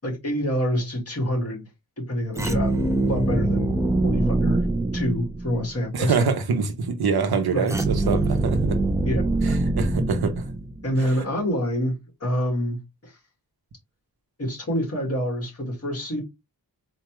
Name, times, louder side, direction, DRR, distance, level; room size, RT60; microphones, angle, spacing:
voice 1, 0.0-1.7 2.0-2.8 3.1-3.7 4.0-6.3 7.5-7.7 9.0-9.6 10.8-13.1 14.4-16.2, equal, 40° left, 1.9 m, -27 dB
sound 1, 2.3-5.7 7.7-11.0, right 2 dB, 10° right, 0.4 m, -23 dB
voice 2, 5.9-8.8 9.4-10.5, right 5 dB, 85° right, 0.8 m, -24 dB
3.9 x 2.3 x 3.0 m
wide cardioid pair, 110°, 37 cm